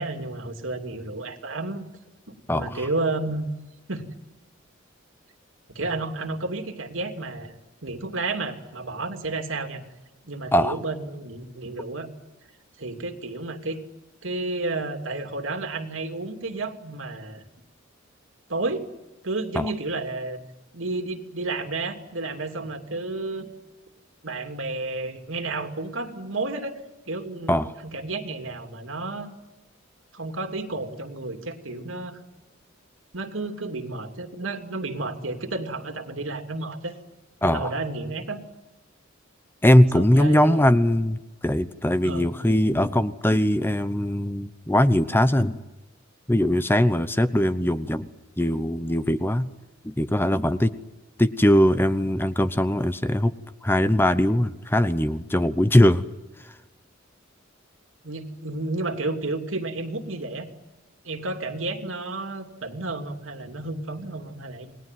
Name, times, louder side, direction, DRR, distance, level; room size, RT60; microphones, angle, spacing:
voice 1, 0.0-1.8 2.6-3.5 3.9-4.1 5.7-7.5 7.8-9.8 10.2-12.1 12.8-13.8 14.2-17.4 18.5-18.9 19.2-20.4 20.7-23.5 24.2-26.8 27.1-29.3 30.1-32.2 33.1-36.9 37.4-38.4 39.9-40.7 42.0-42.3 58.0-60.5 61.0-64.7, right 2 dB, 75° right, 6 dB, 2.9 m, -31 dB
voice 2, 2.5-2.9 10.5-10.8 19.5-19.7 27.5-27.7 37.4-37.7 39.6-45.6 46.3-48.1 48.4-49.5 49.8-50.7 51.2-53.3 53.6-56.0, left 1 dB, 10° left, 13 dB, 0.8 m, -21 dB
29.0 x 20.5 x 9.3 m, 1.1 s
head